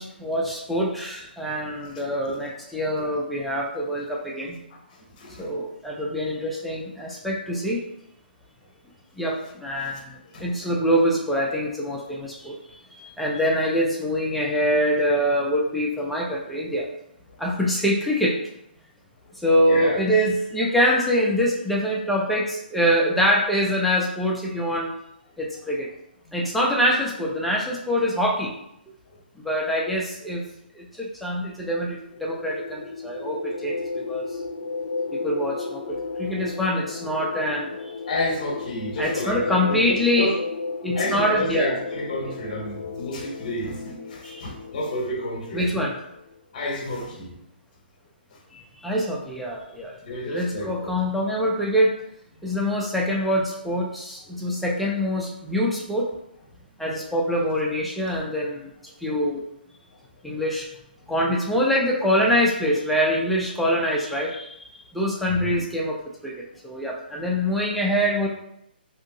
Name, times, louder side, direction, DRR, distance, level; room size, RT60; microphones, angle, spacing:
voice 1, 0.0-4.6 5.4-7.8 9.2-12.6 12.9-16.9 17.4-18.4 19.4-24.9 25.4-25.9 26.3-28.5 29.4-30.4 30.7-34.3 35.1-38.0 39.0-40.3 40.8-41.8 44.2-44.4 45.5-46.0 48.5-50.0 50.3-51.9 52.4-56.1 56.8-58.7 59.0-59.4 60.2-60.7 61.1-66.0 66.2-68.3, equal, ahead, -4 dB, 0.3 m, -24 dB
voice 2, 4.9-5.5 9.8-10.0 10.3-10.5 19.7-20.0 26.3-26.4 38.1-40.4 40.9-45.7 46.5-47.4 48.3-48.4 50.0-51.1 58.1-58.2 61.0-61.1 65.3-65.6, left 1 dB, 45° left, 1 dB, 0.8 m, -31 dB
sound 1, 32.0-46.4, left 4 dB, 80° left, 0.4 m, -34 dB
2.7 x 2.7 x 2.6 m, 0.77 s
hypercardioid pair, 160°, 6 cm